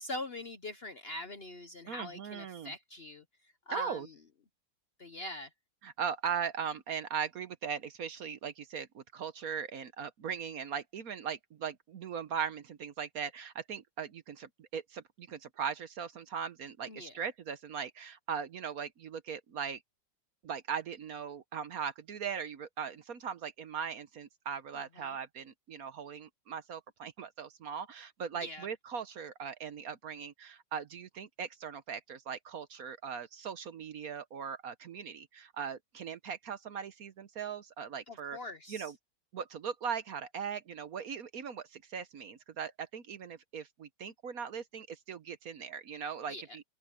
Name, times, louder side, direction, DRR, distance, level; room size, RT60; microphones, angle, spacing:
voice 1, 0.0-3.2 3.7-4.1 5.0-5.5 16.9-17.1 25.0-25.1 28.4-28.7 38.1-38.9 46.3-46.4, left 1 dB, 45° left, 0.9 m, -42 dB
voice 2, 1.9-2.7 3.7-4.1 5.8-19.8 20.4-38.4 38.7-39.0 39.3-46.6, right 7 dB, 60° right, 1.2 m, -39 dB
omnidirectional pair, 2.0 m